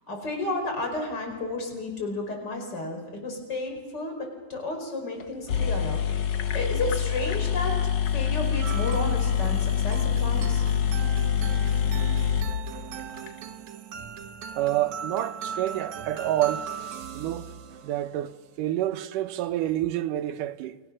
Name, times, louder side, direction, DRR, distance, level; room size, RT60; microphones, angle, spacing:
voice 1, 0.1-6.2 6.5-7.8 8.1-10.6, left 2 dB, 30° left, 5.5 m, -32 dB
sound 1, 5.2-5.3 5.5-13.3, left 8 dB, 80° left, 0.9 m, -26 dB
sound 2, 8.6-18.3, right 7 dB, 70° right, 2.4 m, -39 dB
voice 2, 14.5-16.7 17.1-17.5 17.8-20.8, right 13 dB, 90° right, 2.5 m, -28 dB
30.0 x 22.5 x 6.4 m
omnidirectional pair, 3.6 m